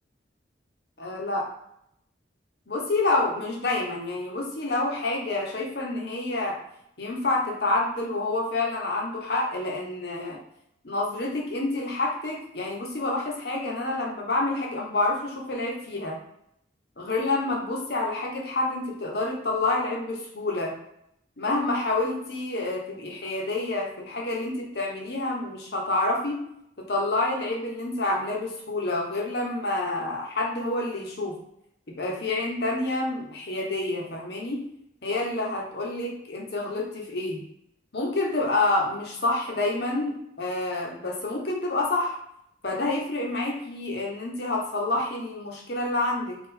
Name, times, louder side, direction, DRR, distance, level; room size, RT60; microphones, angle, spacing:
voice 1, 1.0-1.5 2.7-6.6 7.0-10.4 10.8-16.2 17.0-20.8 21.4-26.5 26.8-31.4 31.9-34.7 35.0-37.4 37.9-42.2 42.6-46.4, left 2 dB, 55° left, -1 dB, 0.9 m, -28 dB
3.8 x 2.5 x 4.2 m, 0.75 s
head